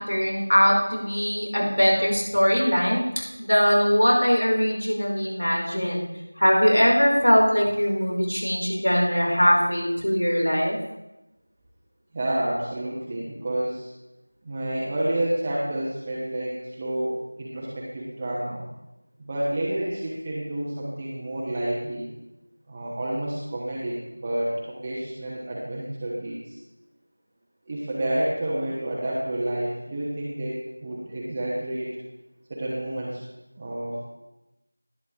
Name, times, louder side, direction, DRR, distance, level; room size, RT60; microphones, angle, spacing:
voice 1, 0.0-6.1 6.3-10.8, equal, 85° left, -1 dB, 5.0 m, -21 dB
voice 2, 12.1-13.9 14.4-18.6 19.2-22.1 22.7-26.6 27.7-31.9 32.5-33.2 33.6-34.0, right 1 dB, 15° right, -7 dB, 1.1 m, -29 dB
19.0 x 8.5 x 3.5 m, 0.97 s
figure-of-eight pair, 175°, 0 cm